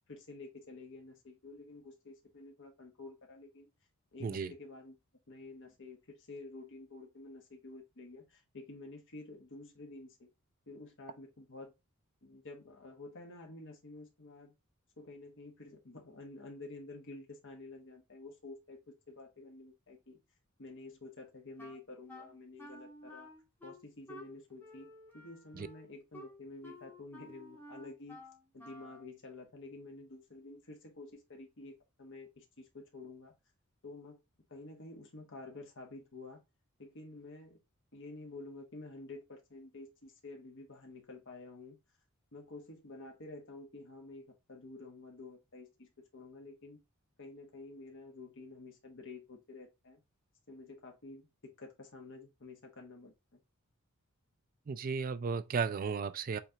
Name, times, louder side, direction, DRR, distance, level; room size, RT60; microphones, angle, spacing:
voice 1, 0.1-3.7 4.1-5.0 5.3-10.3 10.7-11.7 12.2-14.5 15.0-18.8 19.1-20.2 20.6-23.3 23.6-28.2 28.5-33.3 33.8-34.2 34.5-36.4 36.8-37.6 37.9-41.8 42.3-46.8 47.2-50.0 50.5-53.4, left 2 dB, 60° left, 1.2 m, -50 dB
voice 2, 4.2-4.5 25.6-25.7 54.7-56.4, right 5 dB, 40° right, 0.4 m, -34 dB
Wind instrument woodwind instrument, 21.6-29.1, left 1 dB, 10° left, 1.5 m, -53 dB
5.8 x 3.3 x 2.8 m
head